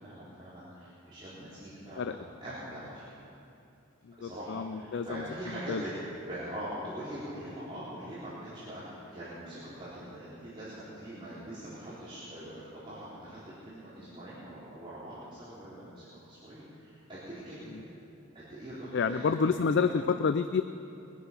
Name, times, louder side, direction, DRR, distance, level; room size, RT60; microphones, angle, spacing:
voice 1, 0.0-3.2 4.2-17.8 18.3-20.1, right 1 dB, 25° right, -12 dB, 3.6 m, -43 dB
voice 2, 4.1-5.2 5.7-5.8 18.9-20.6, left 5 dB, 60° left, 10 dB, 0.4 m, -28 dB
22.0 x 9.7 x 5.6 m, 2.6 s
head